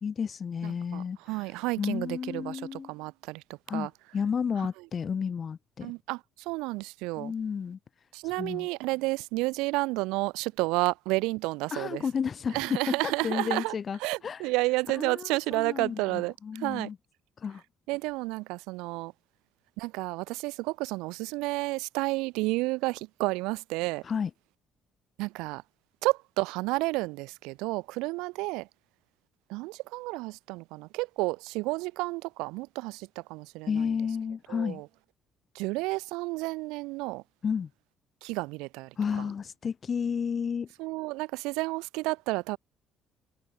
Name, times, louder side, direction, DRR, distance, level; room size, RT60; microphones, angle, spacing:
voice 1, 0.0-1.2 1.8-2.9 3.7-5.9 7.2-7.8 8.4-8.7 11.7-14.4 15.0-17.0 17.4-17.6 24.0-24.3 33.7-34.8 37.4-37.7 39.0-40.7, left 6 dB, 45° left, 0.7 m, -32 dB
voice 2, 0.6-3.4 3.7-3.9 5.8-7.3 8.1-12.0 12.5-16.9 17.9-19.1 19.8-24.0 25.2-25.6 26.0-28.7 29.5-33.9 34.5-34.9 35.5-37.2 38.2-38.9 40.8-42.6, right 23 dB, 85° right, 1.0 m, -31 dB
supercardioid pair, 75°, 0 cm